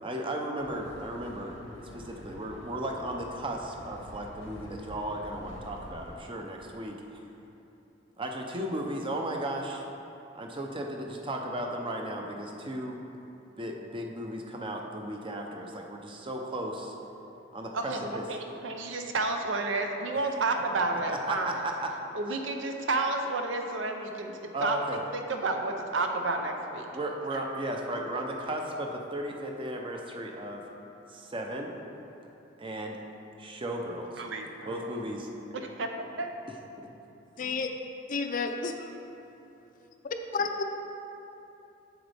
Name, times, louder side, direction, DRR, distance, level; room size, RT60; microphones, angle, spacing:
voice 1, 0.0-7.2 8.2-9.9 10.3-13.0 13.6-16.9 17.5-18.2 21.1-21.9 24.5-25.0 26.9-30.6 31.1-31.8 32.6-33.0 33.4-34.2 34.6-35.3 36.8-36.9 37.4-37.5, right 1 dB, 25° right, 2 dB, 0.6 m, -35 dB
sound 1, 0.6-6.2, left 1 dB, 85° left, 0.9 m, -47 dB
voice 2, 17.7-21.6 22.1-26.9 27.3-27.4 34.2-35.0 35.5-36.3, right 3 dB, 80° right, 4 dB, 0.6 m, -31 dB
voice 3, 37.4-37.7 38.1-38.9 40.3-40.6, left 4 dB, 45° left, 5 dB, 0.5 m, -30 dB
7.9 x 7.1 x 3.4 m, 2.9 s
head